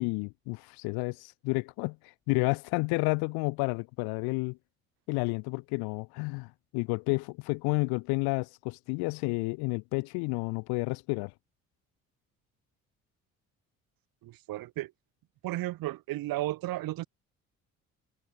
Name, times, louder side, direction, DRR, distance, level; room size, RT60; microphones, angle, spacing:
voice 1, 0.0-4.6 5.1-11.3, left 30 dB, 75° left, 0.5 m, -31 dB
voice 2, 14.2-14.9 15.4-17.1, right 16 dB, 60° right, 0.8 m, -34 dB
hypercardioid pair, 50°, 39 cm